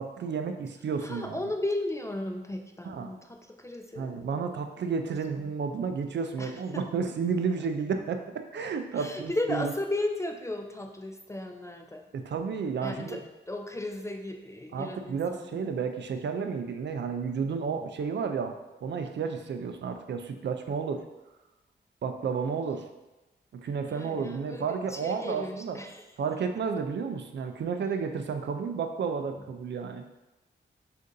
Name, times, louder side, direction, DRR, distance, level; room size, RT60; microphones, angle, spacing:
voice 1, 0.0-1.4 2.8-3.1 4.0-9.7 12.1-13.2 14.7-18.5 18.8-21.0 22.0-22.9 23.5-25.8 26.2-30.0, right 5 dB, 65° right, 6 dB, 0.4 m, -32 dB
voice 2, 1.0-4.5 5.1-5.2 6.4-6.8 8.9-12.1 12.8-15.7 23.9-26.1 29.4-29.5, left 1 dB, 15° left, 3 dB, 0.3 m, -35 dB
6.4 x 2.6 x 2.6 m, 1.0 s
wide cardioid pair, 105°, 19 cm